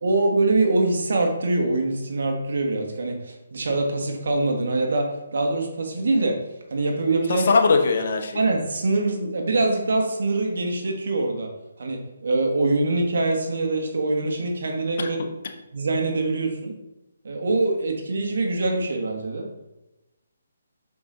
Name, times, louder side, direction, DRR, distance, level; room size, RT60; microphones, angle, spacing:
voice 1, 0.0-6.4 6.7-7.5 8.3-11.5 11.8-15.2 15.7-16.7 17.2-19.5, right 2 dB, 65° right, 2 dB, 1.3 m, -24 dB
voice 2, 7.3-8.4 15.0-15.1, left 4 dB, 50° left, 3 dB, 1.0 m, -20 dB
6.1 x 4.8 x 3.8 m, 0.96 s
hypercardioid pair, 155°, 0 cm